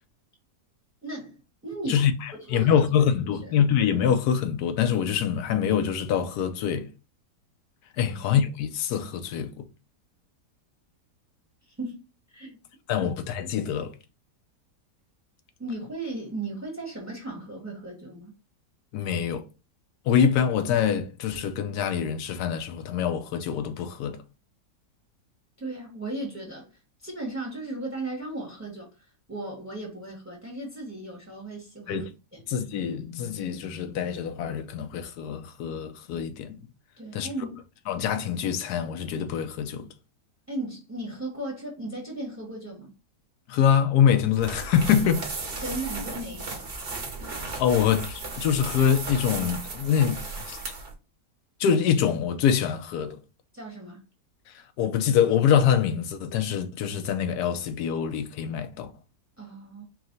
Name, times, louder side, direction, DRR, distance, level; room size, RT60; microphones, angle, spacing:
voice 1, 1.0-2.0 2.3-2.9 8.1-8.2 11.7-12.6 13.0-13.1 15.6-18.3 25.6-26.7 27.0-32.0 32.3-32.4 37.0-37.6 40.5-42.9 45.6-46.7 53.5-54.0 59.4-59.8, right 2 dB, 10° right, 1.0 m, -36 dB
voice 2, 1.9-6.9 8.0-9.7 12.9-13.9 18.9-19.4 20.1-24.2 31.9-32.1 32.5-36.6 37.1-37.3 37.9-39.9 43.5-45.2 47.6-50.6 51.6-53.2 54.5-58.9, left 8 dB, 75° left, 1.1 m, -25 dB
sound 1, 44.3-50.9, right 3 dB, 40° right, 1.0 m, -35 dB
4.8 x 2.1 x 3.8 m
omnidirectional pair, 1.8 m